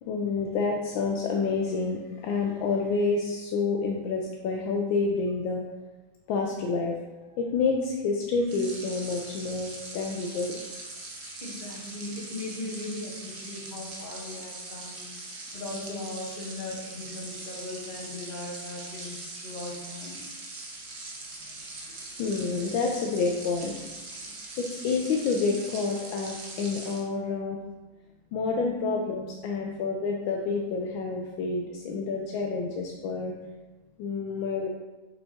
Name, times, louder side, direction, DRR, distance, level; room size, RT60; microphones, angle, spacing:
voice 1, 0.0-5.6 6.3-6.9 7.4-10.6 22.2-23.7 24.6-27.6 28.3-33.3 34.0-34.7, left 4 dB, 80° left, 1 dB, 1.4 m, -28 dB
sound 1, 8.4-27.0, right 2 dB, 45° right, 0.9 m, -41 dB
voice 2, 11.4-20.2, left 2 dB, 30° left, -3 dB, 1.2 m, -39 dB
5.8 x 4.6 x 4.2 m, 1.2 s
omnidirectional pair, 2.2 m